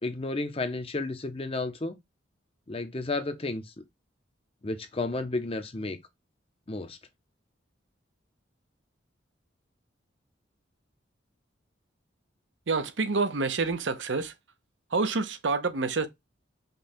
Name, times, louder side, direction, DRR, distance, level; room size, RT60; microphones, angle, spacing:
voice 1, 0.0-2.0 2.7-3.7 4.6-6.0 6.7-7.0, left 2 dB, 30° left, 0.6 m, -32 dB
voice 2, 12.7-14.3 14.9-16.1, right 4 dB, 75° right, 0.7 m, -27 dB
5.2 x 2.3 x 4.3 m
head